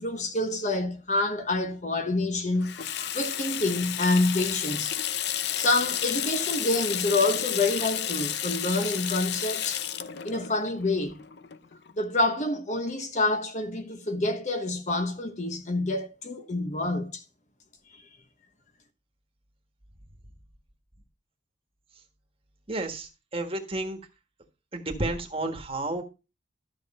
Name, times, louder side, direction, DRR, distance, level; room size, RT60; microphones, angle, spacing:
voice 1, 0.0-4.9 5.5-9.8 10.2-11.2 12.0-17.2, left 2 dB, 40° left, 1.1 m, -27 dB
Water tap faucet / Sink (filling or washing), 2.6-11.9, left 10 dB, 60° left, 0.6 m, -31 dB
voice 2, 22.7-24.0 24.7-26.0, right 2 dB, 30° right, 1.5 m, -31 dB
12.5 x 6.4 x 4.2 m
head